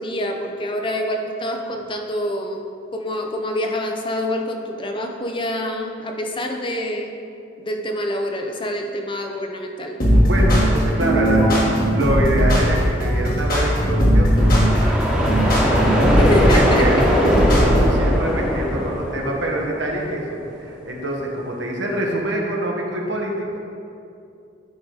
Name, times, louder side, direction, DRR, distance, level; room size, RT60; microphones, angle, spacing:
voice 1, 0.0-2.6 2.9-7.1 7.6-10.0 16.2-16.9, equal, 30° left, 3 dB, 0.6 m, -26 dB
sound 1, 10.0-18.0, equal, 50° left, 1.7 m, -18 dB
voice 2, 10.2-17.0 17.4-23.7, right 1 dB, 80° right, -1 dB, 1.3 m, -26 dB
sound 2, 14.4-20.1, equal, 5° right, 1.2 m, -20 dB
11.0 x 3.9 x 4.8 m, 2.6 s
head